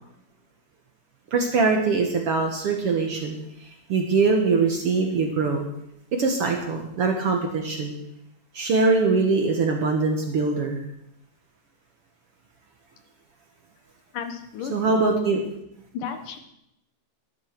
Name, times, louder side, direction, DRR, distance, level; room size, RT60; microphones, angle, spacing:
voice 1, 1.3-3.4 3.6-5.7 6.1-8.0 8.5-10.8 14.7-15.4, right 4 dB, 55° right, 2 dB, 1.7 m, -22 dB
voice 2, 14.1-15.1 15.9-16.4, left 7 dB, 70° left, 7 dB, 2.6 m, -34 dB
12.0 x 11.5 x 6.0 m, 0.82 s
omnidirectional pair, 4.1 m